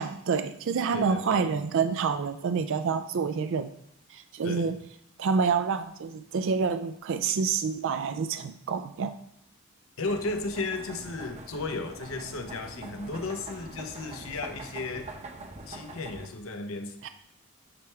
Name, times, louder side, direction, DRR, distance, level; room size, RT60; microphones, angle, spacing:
voice 1, 0.0-3.7 4.1-4.8 5.2-9.2 17.0-17.1, right 5 dB, 65° right, 10 dB, 0.4 m, -28 dB
voice 2, 0.9-1.5 4.4-4.7 10.0-15.1 15.7-17.1, left 3 dB, 70° left, 6 dB, 0.8 m, -34 dB
sound 1, 10.0-16.3, right 2 dB, 30° right, 0.8 m, -44 dB
8.7 x 3.3 x 4.5 m, 0.72 s
head